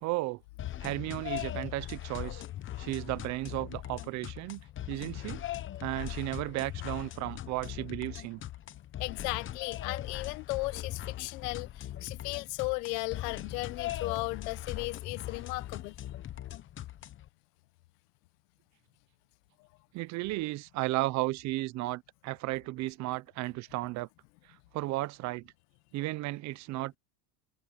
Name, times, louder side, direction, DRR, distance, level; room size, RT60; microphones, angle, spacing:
voice 1, 0.0-0.4 0.8-2.4 2.8-4.6 4.9-5.4 5.8-8.4 19.9-24.1 24.7-25.5 25.9-27.0, right 19 dB, 40° right, 0.5 m, -34 dB
sound 1, 0.6-17.3, left 13 dB, 25° left, 0.8 m, -40 dB
voice 2, 9.0-15.9, left 24 dB, 85° left, 1.2 m, -36 dB
cardioid pair, 150°, 47 cm